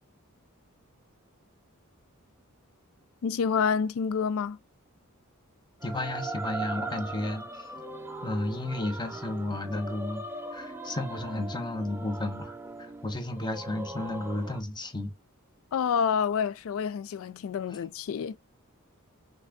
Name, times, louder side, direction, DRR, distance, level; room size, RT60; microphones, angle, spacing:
voice 1, 3.2-4.6 15.7-18.4, left 6 dB, 70° left, 0.3 m, -28 dB
voice 2, 5.8-7.7 8.2-10.3 10.5-12.5 12.8-15.1 17.7-17.8, left 1 dB, 20° left, 1.0 m, -33 dB
sound 1, 5.8-14.6, right 2 dB, 10° right, 0.6 m, -39 dB
5.7 x 3.4 x 2.7 m
head